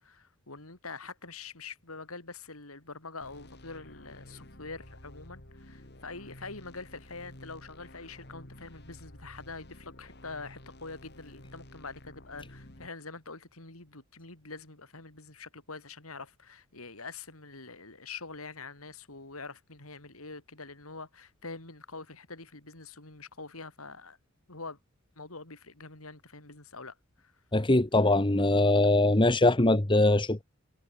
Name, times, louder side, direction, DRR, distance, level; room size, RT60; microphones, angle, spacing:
voice 1, 0.0-24.2 24.5-24.8 25.2-27.3, left 3 dB, 90° left, 5.0 m, -45 dB
sound 1, 3.2-12.9, left 1 dB, 50° left, 4.8 m, -51 dB
voice 2, 27.5-30.4, left 2 dB, 25° left, 1.3 m, -22 dB
head